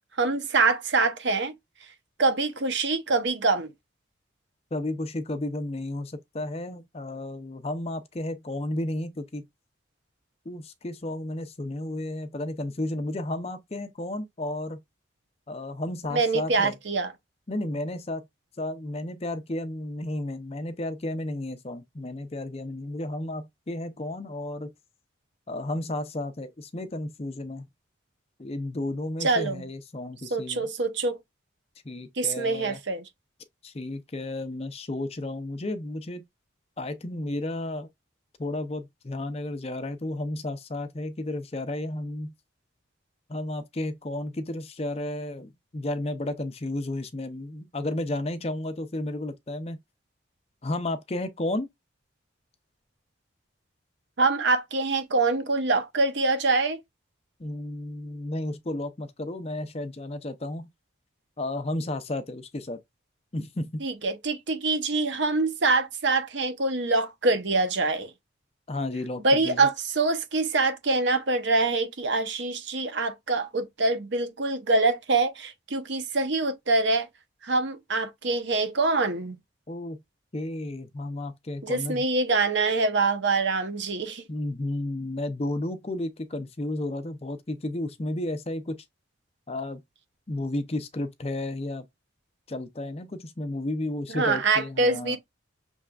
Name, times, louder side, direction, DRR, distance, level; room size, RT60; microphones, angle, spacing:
voice 1, 0.2-1.5 2.2-3.7 16.1-17.1 29.2-29.7 30.3-31.2 32.2-33.0 54.2-56.8 63.8-68.1 69.2-77.1 77.4-79.4 81.6-84.2 94.1-95.2, right 3 dB, 65° right, 0.8 m, -25 dB
voice 2, 4.7-9.4 10.4-14.8 15.5-16.8 17.5-18.2 18.6-24.7 25.5-27.7 28.4-30.7 31.8-32.8 33.6-36.2 36.8-37.9 38.4-42.3 43.3-49.8 50.6-51.7 57.4-60.7 61.4-62.8 63.3-63.8 68.7-69.7 79.7-80.0 80.3-82.0 84.3-88.8 89.5-89.8 90.3-91.9 92.5-95.2, left 1 dB, 30° left, 0.5 m, -32 dB
6.2 x 3.2 x 2.3 m
head